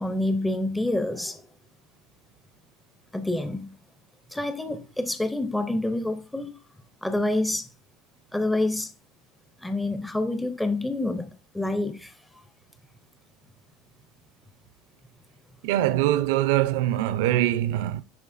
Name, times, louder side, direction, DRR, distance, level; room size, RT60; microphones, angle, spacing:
voice 1, 0.0-1.4 3.1-3.7 4.3-6.5 7.0-7.7 8.3-8.9 9.6-12.1, left 2 dB, 5° left, 0.5 m, -27 dB
voice 2, 15.6-18.0, right 14 dB, 80° right, 0.5 m, -23 dB
10.5 x 3.9 x 2.5 m
cardioid pair, 175°, 0 cm